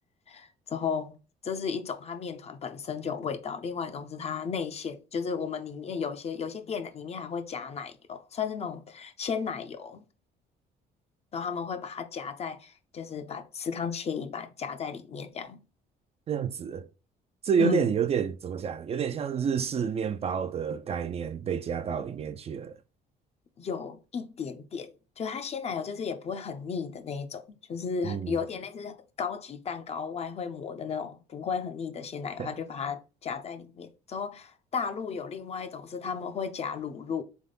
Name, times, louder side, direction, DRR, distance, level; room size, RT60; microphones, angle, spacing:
voice 1, 0.3-10.0 11.3-15.6 17.6-17.9 18.1-18.2 23.6-37.2, left 6 dB, 40° left, 0.6 m, -34 dB
voice 2, 16.3-16.9 17.4-22.7 28.0-28.4 32.4-32.5, right 7 dB, 35° right, 0.4 m, -29 dB
3.7 x 3.6 x 3.8 m
cardioid pair, 110°, 17 cm